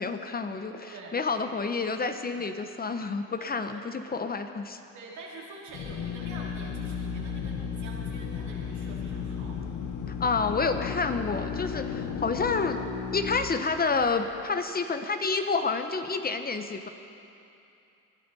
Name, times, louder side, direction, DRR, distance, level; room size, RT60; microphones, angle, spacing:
voice 1, 0.0-4.8 10.2-12.8 13.1-16.9, left 4 dB, 30° left, 8 dB, 0.8 m, -29 dB
voice 2, 0.8-1.6 2.3-2.4 3.3-3.8 4.9-9.6, right 3 dB, 70° right, -4 dB, 3.1 m, -46 dB
Drill, 5.7-14.3, left 6 dB, 75° left, 1.0 m, -34 dB
19.5 x 11.0 x 4.1 m, 2.7 s
cardioid pair, 90°, 30 cm